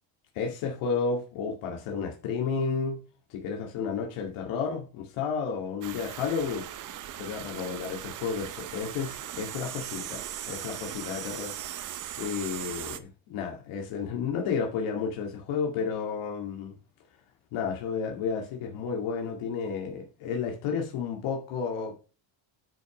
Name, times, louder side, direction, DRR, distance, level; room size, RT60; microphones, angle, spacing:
voice 1, 0.3-3.0 3.3-6.7 7.2-11.8 12.2-16.8 17.5-22.0, left 6 dB, 80° left, 2.2 m, -32 dB
sound 1, 5.8-13.0, right 11 dB, 40° right, 0.7 m, -39 dB
9.2 x 5.1 x 4.9 m
cardioid pair, 160°, 49 cm